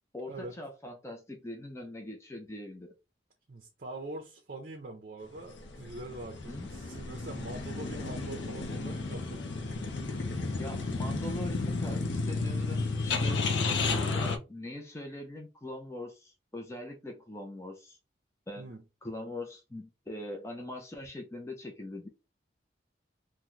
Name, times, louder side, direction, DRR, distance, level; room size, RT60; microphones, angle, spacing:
voice 1, 0.1-2.9 6.5-6.7 10.3-18.0 18.5-18.7 19.0-22.1, left 1 dB, 15° left, 0.4 m, -42 dB
voice 2, 3.5-9.7 13.8-14.0 18.6-18.8, right 2 dB, 50° right, 0.5 m, -44 dB
sound 1, 5.5-14.4, left 3 dB, 70° left, 0.5 m, -32 dB
2.9 x 2.1 x 3.7 m
head